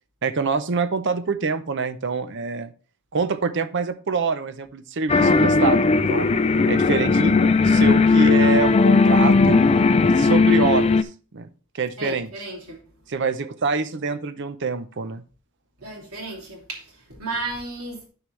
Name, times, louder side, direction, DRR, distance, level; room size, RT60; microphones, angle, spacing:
voice 1, 0.2-2.7 3.1-6.3 6.7-7.3 7.6-9.6 10.2-10.9 11.3-11.5 11.7-12.3 13.1-15.2, right 4 dB, 55° right, 0.6 m, -25 dB
sound 1, 5.1-11.0, left 3 dB, 30° left, 0.3 m, -17 dB
voice 2, 12.0-12.8 15.8-18.1, right 2 dB, 85° right, 2.9 m, -33 dB
12.5 x 4.6 x 3.2 m
head